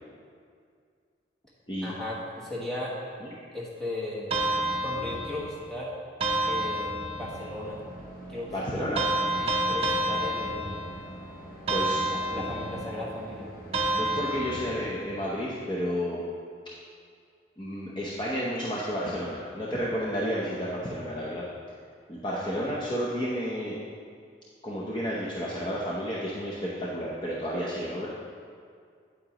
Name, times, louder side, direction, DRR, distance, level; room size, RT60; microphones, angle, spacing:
voice 1, 1.8-3.0 3.5-4.3 4.8-5.9 6.4-7.8 8.3-8.8 9.4-10.8 12.1-13.5 22.3-22.7, left 1 dB, 5° left, -7 dB, 1.4 m, -36 dB
sound 1, 4.3-5.6 6.2-7.5 9.0-11.1 11.7-13.0 13.7-15.0, right 1 dB, 30° right, 0.6 m, -29 dB
lawn care, 7.2-13.9, right 1 dB, 50° left, 1.4 m, -44 dB
voice 2, 8.5-9.0 11.7-12.0 12.3-12.4 13.9-16.2 17.6-21.4 22.1-23.8 24.6-28.1, equal, 25° left, -6 dB, 0.7 m, -31 dB
8.7 x 8.6 x 3.0 m, 2.2 s
head